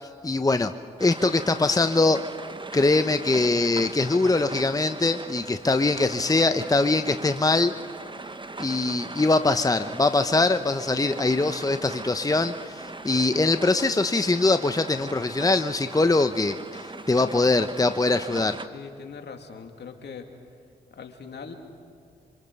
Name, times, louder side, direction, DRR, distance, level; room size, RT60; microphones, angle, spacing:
voice 1, 0.2-0.7 1.0-2.2 2.7-7.7 8.6-16.6 17.1-18.6, left 3 dB, 20° left, 9 dB, 0.9 m, -22 dB
sound 1, 1.0-18.7, right 3 dB, 25° right, 1.3 m, -39 dB
voice 2, 18.7-20.3 20.9-21.5, left 5 dB, 65° left, 4 dB, 2.6 m, -41 dB
28.5 x 25.5 x 5.5 m, 2.3 s
supercardioid pair, 40°, 19 cm